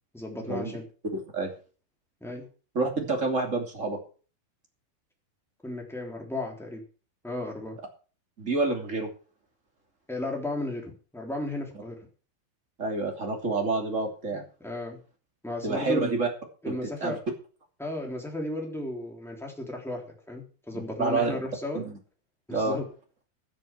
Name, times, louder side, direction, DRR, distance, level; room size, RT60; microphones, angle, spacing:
voice 1, 0.1-0.8 2.2-2.5 5.6-6.8 7.2-7.8 10.1-12.0 14.3-15.0 15.4-16.2 16.6-17.2 17.8-21.8 22.5-22.9, left 1 dB, ahead, 0 dB, 3.0 m, -34 dB
voice 2, 1.1-1.5 2.7-4.0 8.4-9.1 12.8-14.4 15.6-16.3 16.6-16.7 17.0-17.2 20.7-21.4 21.7-22.0 22.5-22.8, right 3 dB, 20° right, 2 dB, 2.7 m, -28 dB
15.5 x 7.7 x 6.0 m, 0.38 s
omnidirectional pair, 4.4 m